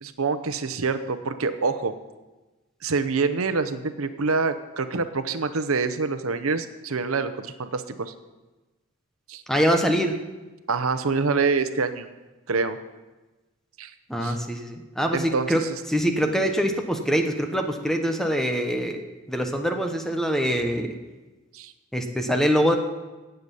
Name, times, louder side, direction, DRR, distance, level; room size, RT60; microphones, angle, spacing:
voice 1, 0.0-1.9 2.8-8.1 9.3-9.4 10.7-12.1 12.5-12.8 13.8-13.9 14.2-14.4 15.1-15.7 21.5-21.7, right 4 dB, 85° right, 10 dB, 0.8 m, -26 dB
voice 2, 9.5-10.1 14.1-15.6 15.9-19.0 19.3-21.0 21.9-22.8, equal, ahead, 4 dB, 1.1 m, -24 dB
17.0 x 8.0 x 5.5 m, 1.2 s
head